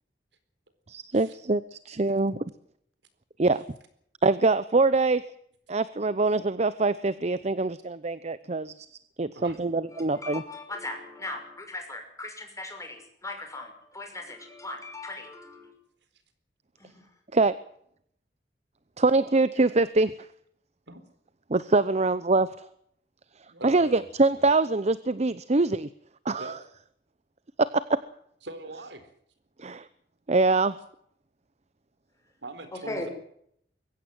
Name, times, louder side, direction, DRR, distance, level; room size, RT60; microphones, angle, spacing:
voice 1, 0.9-2.4 3.4-3.6 4.2-5.2 5.7-8.7 9.2-10.4 17.3-17.6 19.0-20.1 21.5-22.5 23.6-25.9 26.3-26.5 27.6-28.0 29.6-29.9 30.3-30.8, right 3 dB, 40° right, 15 dB, 0.8 m, -24 dB
voice 2, 9.9-15.7 16.8-17.1 32.7-33.1, left 2 dB, 20° left, 4 dB, 5.9 m, -39 dB
voice 3, 23.5-24.1 24.3-24.5 26.4-26.6 28.4-29.1 32.4-33.1, right 2 dB, 85° right, 10 dB, 4.3 m, -41 dB
23.0 x 16.0 x 7.9 m, 0.69 s
head